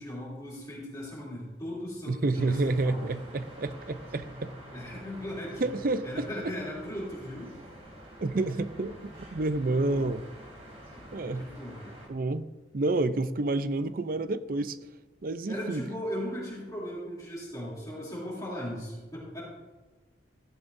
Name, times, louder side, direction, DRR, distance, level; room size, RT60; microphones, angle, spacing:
voice 1, 0.0-3.2 4.7-5.6 6.0-7.5 9.6-10.1 11.0-11.9 15.5-19.4, equal, 20° left, -6 dB, 2.9 m, -38 dB
voice 2, 2.1-4.5 5.6-6.3 8.2-10.2 11.1-11.5 12.1-12.5 12.7-14.8 15.2-15.8, right 2 dB, 50° right, 13 dB, 0.5 m, -29 dB
sound 1, 2.3-12.1, right 1 dB, 30° right, 2.8 m, -48 dB
14.5 x 11.0 x 2.6 m, 1.3 s
head